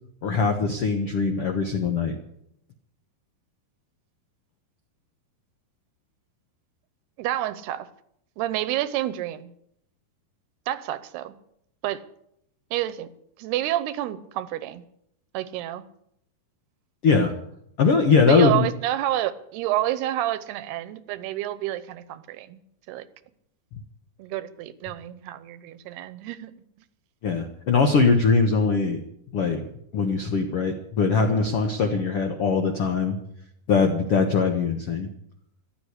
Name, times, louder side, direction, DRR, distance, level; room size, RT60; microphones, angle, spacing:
voice 1, 0.2-2.1 17.0-17.3 17.8-18.7 27.2-29.0 29.3-29.7 29.9-33.2 33.7-35.1, left 4 dB, 75° left, 5 dB, 1.3 m, -21 dB
voice 2, 7.2-7.9 8.4-9.5 10.7-11.3 11.8-12.0 12.7-13.1 13.4-14.8 15.3-15.8 18.2-22.6 22.9-23.0 24.2-26.5, right 13 dB, 85° right, 14 dB, 2.9 m, -29 dB
14.5 x 12.0 x 8.3 m, 0.74 s
omnidirectional pair, 4.7 m